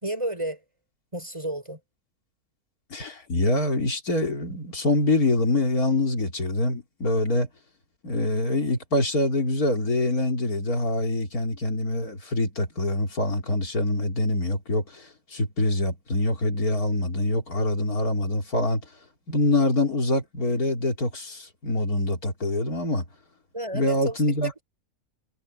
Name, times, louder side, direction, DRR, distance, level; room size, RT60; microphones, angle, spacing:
voice 1, 0.0-0.6 1.1-1.8 23.5-24.6, right 1 dB, 20° right, 5.9 m, -32 dB
voice 2, 2.9-7.5 8.0-18.9 19.3-23.1 23.7-24.5, left 2 dB, 85° left, 3.9 m, -25 dB
omnidirectional pair, 1.5 m